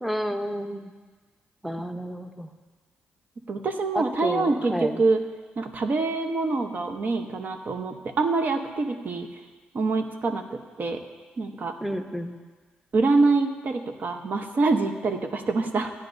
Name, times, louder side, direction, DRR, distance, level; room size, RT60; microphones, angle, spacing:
voice 1, 0.0-0.9 1.6-2.5 3.9-5.0 11.8-12.4, equal, 5° right, 6 dB, 0.9 m, -30 dB
voice 2, 3.5-5.2 5.6-9.3 9.7-11.0 11.4-11.8 12.9-15.9, right 3 dB, 50° right, 5 dB, 1.0 m, -25 dB
16.0 x 9.7 x 2.7 m, 1.4 s
cardioid pair, 65°, 4 cm